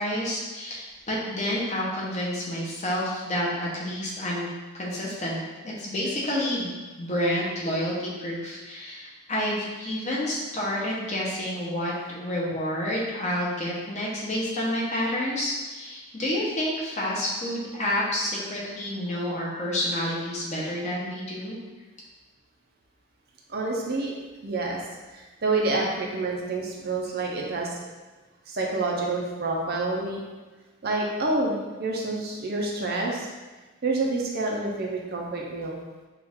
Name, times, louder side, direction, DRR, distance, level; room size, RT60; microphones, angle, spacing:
voice 1, 0.0-4.5 4.7-6.7 7.0-21.6, left 1 dB, 35° left, -4 dB, 0.9 m, -29 dB
voice 2, 23.5-24.1 24.4-24.8 25.1-27.8 28.5-30.2 30.8-33.3 33.8-35.7, right 2 dB, 50° right, -2 dB, 0.6 m, -28 dB
4.6 x 2.5 x 3.5 m, 1.2 s
head